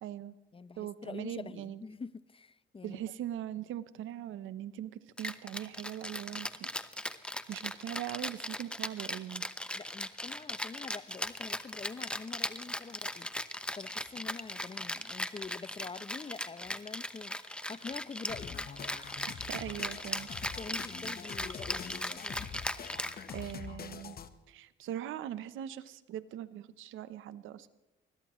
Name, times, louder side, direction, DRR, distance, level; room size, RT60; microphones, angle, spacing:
voice 1, 0.0-0.4 0.8-1.8 2.8-6.7 7.0-7.2 7.5-9.5 19.5-20.3 23.3-24.2 24.5-27.7, right 11 dB, 85° right, 0.9 m, -41 dB
voice 2, 0.5-3.0 9.7-13.3 13.7-18.7 20.6-22.5, left 4 dB, 25° left, 0.7 m, -45 dB
Rattle (instrument), 5.2-23.7, left 1 dB, 5° left, 0.9 m, -38 dB
sound 1, 18.3-24.3, left 7 dB, 50° left, 1.2 m, -45 dB
20.5 x 20.5 x 3.1 m
cardioid pair, 90°, 20 cm